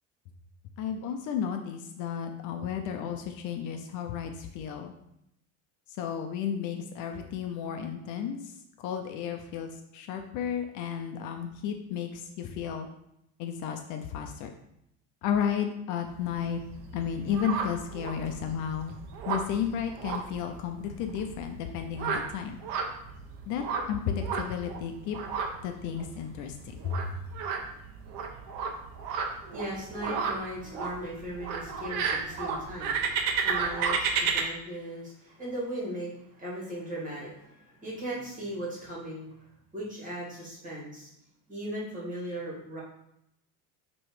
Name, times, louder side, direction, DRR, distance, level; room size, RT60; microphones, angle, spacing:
voice 1, 0.8-4.9 6.0-8.4 8.8-12.9 13.4-14.5 15.2-16.6 16.9-19.0 19.3-22.6 23.5-25.2 25.6-27.0, left 8 dB, 60° left, 5 dB, 0.7 m, -33 dB
sound 1, 16.1-34.4, right 5 dB, 65° right, 1.0 m, -33 dB
voice 2, 29.3-39.3 39.7-41.1 41.5-42.8, right 1 dB, 20° right, -5 dB, 2.4 m, -38 dB
6.2 x 3.1 x 4.8 m, 0.79 s
cardioid pair, 160°, 35 cm